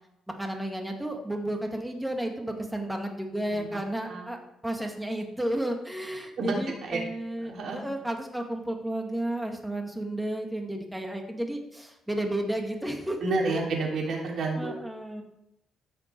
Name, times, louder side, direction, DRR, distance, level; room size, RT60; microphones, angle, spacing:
voice 1, 0.4-13.2 13.5-13.6 14.6-15.2, right 1 dB, 5° right, 3 dB, 2.0 m, -32 dB
voice 2, 7.4-7.8 13.2-14.7, right 3 dB, 65° right, -1 dB, 3.3 m, -29 dB
14.5 x 5.9 x 4.6 m, 0.84 s
cardioid pair, 90°, 0 cm